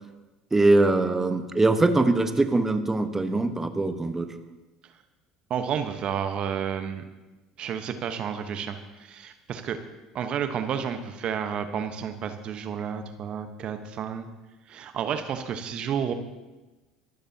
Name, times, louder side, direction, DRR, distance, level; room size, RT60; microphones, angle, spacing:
voice 1, 0.5-4.3, right 2 dB, 15° right, 8 dB, 1.2 m, -22 dB
voice 2, 5.5-7.0 7.6-9.8 10.1-14.3 14.7-16.1, right 8 dB, 50° right, 8 dB, 1.1 m, -31 dB
24.5 x 12.0 x 2.9 m, 1.1 s
hypercardioid pair, 65°, 2 cm